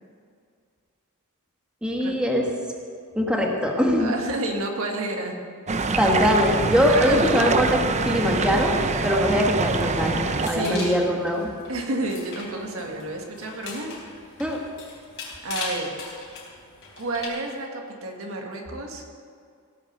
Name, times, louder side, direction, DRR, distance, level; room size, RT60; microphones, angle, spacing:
voice 1, 1.8-2.5 3.1-4.1 6.0-11.5 14.4-14.6, equal, 5° right, 0 dB, 1.4 m, -22 dB
voice 2, 4.0-5.4 6.9-7.5 10.4-11.1 11.7-13.9 15.4-15.9 17.0-19.0, right 2 dB, 65° right, 1 dB, 1.8 m, -30 dB
sound 1, 5.7-10.5, right 3 dB, 30° right, 0.6 m, -24 dB
sound 2, 10.0-17.3, left 4 dB, 60° left, 3.9 m, -39 dB
17.0 x 7.3 x 6.6 m, 2.3 s
head